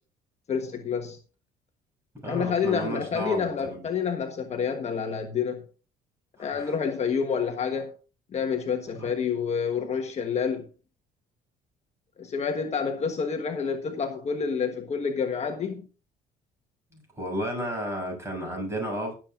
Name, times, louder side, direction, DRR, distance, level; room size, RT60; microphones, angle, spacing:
voice 1, 0.5-1.2 2.2-5.6 6.4-7.9 8.3-10.7 12.2-15.9, left 6 dB, 40° left, 1.3 m, -28 dB
voice 2, 2.2-3.8 6.4-6.8 9.0-9.1 16.9-19.1, equal, 15° right, 7.4 m, -33 dB
20.0 x 7.4 x 2.5 m
cardioid pair, 110°, 17 cm